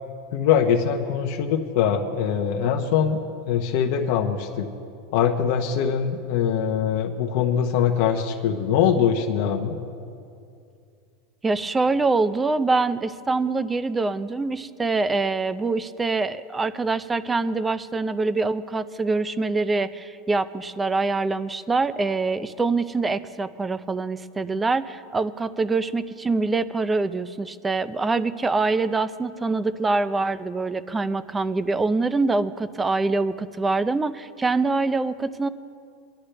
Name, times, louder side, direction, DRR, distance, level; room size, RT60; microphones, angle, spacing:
voice 1, 0.3-3.2 3.5-4.7 5.1-9.8, left 8 dB, 65° left, 2 dB, 0.9 m, -22 dB
voice 2, 11.4-35.5, right 3 dB, 15° right, 15 dB, 0.5 m, -24 dB
22.5 x 11.5 x 3.4 m, 2.4 s
supercardioid pair, 130°, 0 cm